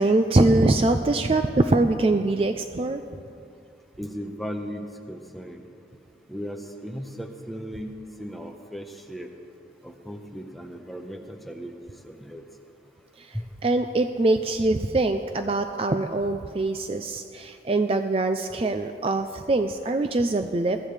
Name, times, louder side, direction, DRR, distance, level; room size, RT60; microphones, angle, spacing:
voice 1, 0.0-3.0 13.2-13.4 13.6-20.8, right 2 dB, 35° right, 7 dB, 0.4 m, -23 dB
voice 2, 4.0-5.6 6.3-9.3 9.8-12.4 13.3-13.5, equal, ahead, 3 dB, 0.9 m, -36 dB
21.5 x 14.0 x 3.3 m, 2.5 s
head